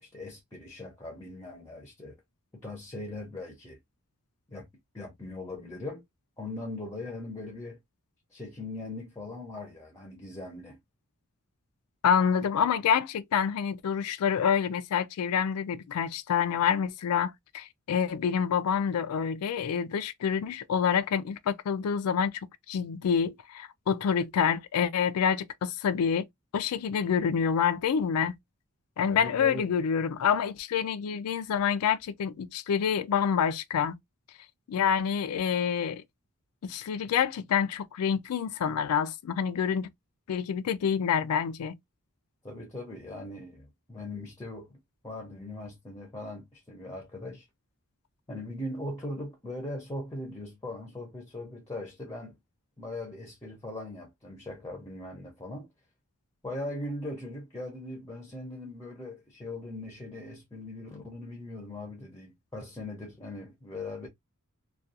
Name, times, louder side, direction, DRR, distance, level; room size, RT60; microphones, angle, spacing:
voice 1, 0.0-2.2 2.5-3.8 4.5-4.7 4.9-6.0 6.4-7.8 8.3-10.8 29.1-29.7 42.4-44.8 45.0-47.5 48.3-52.4 52.8-55.7 56.4-64.1, left 2 dB, 15° left, 0.6 m, -40 dB
voice 2, 12.0-22.3 22.7-26.2 26.5-28.3 29.0-34.0 34.7-36.0 36.6-39.9 40.3-41.8, left 7 dB, 75° left, 0.4 m, -27 dB
2.3 x 2.3 x 2.6 m
head